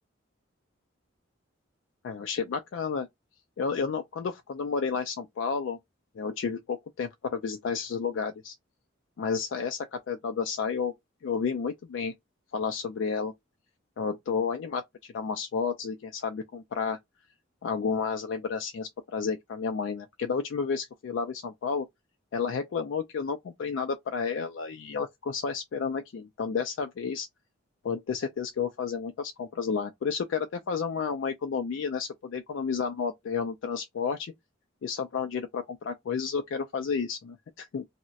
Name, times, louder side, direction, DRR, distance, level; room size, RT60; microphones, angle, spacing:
voice 1, 2.0-3.1 3.6-5.8 6.2-8.5 9.2-10.9 11.2-12.1 12.5-13.3 14.0-17.0 17.6-21.9 22.3-27.3 27.8-34.3 34.8-37.8, left 5 dB, 70° left, 0.3 m, -31 dB
2.3 x 2.1 x 3.9 m
head